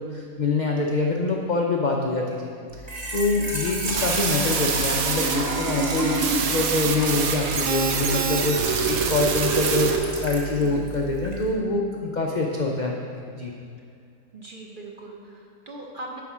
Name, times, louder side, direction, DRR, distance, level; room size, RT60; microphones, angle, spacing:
voice 1, 0.0-2.5 3.1-13.6, left 3 dB, 60° left, 0 dB, 0.4 m, -25 dB
Trickle dribble / Fill (with liquid), 2.7-11.5, right 2 dB, 30° right, 1.1 m, -29 dB
sound 1, 3.7-10.0, right 6 dB, 75° right, 1.1 m, -27 dB
voice 2, 10.6-11.0 14.3-16.2, right 2 dB, 50° right, -1 dB, 0.6 m, -40 dB
9.6 x 4.3 x 6.0 m, 2.3 s
omnidirectional pair, 1.6 m